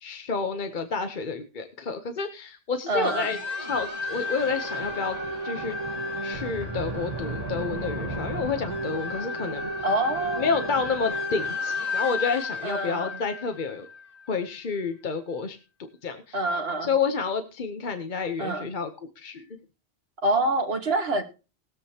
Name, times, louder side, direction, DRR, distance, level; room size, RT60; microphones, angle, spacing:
voice 1, 0.0-3.4 3.7-5.2 5.4-5.8 6.2-9.7 10.4-13.9 14.3-15.6 16.0-16.4 16.8-18.9 19.2-19.5, left 5 dB, 50° left, 7 dB, 1.0 m, -29 dB
voice 2, 2.9-3.4 9.8-10.5 12.6-13.2 16.3-16.9 18.4-18.7 20.2-21.2, right 2 dB, 70° right, 6 dB, 1.7 m, -26 dB
sound 1, 3.0-14.2, left 1 dB, 40° right, 1.6 m, -32 dB
20.0 x 7.5 x 2.9 m, 0.32 s
omnidirectional pair, 1.1 m